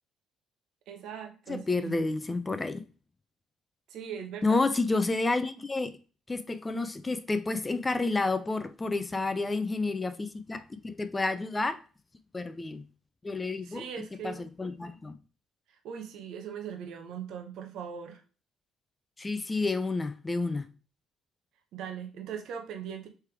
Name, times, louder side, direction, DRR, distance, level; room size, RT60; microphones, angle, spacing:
voice 1, 0.9-2.1 3.9-4.6 13.6-14.5 15.7-18.2 21.7-23.1, right 8 dB, 75° right, 0.7 m, -40 dB
voice 2, 1.5-2.8 4.4-6.0 6.3-11.8 12.3-12.8 13.2-13.8 14.2-15.2 19.2-20.7, left 3 dB, 20° left, 0.4 m, -30 dB
3.3 x 3.3 x 4.4 m
supercardioid pair, 80°, 0 cm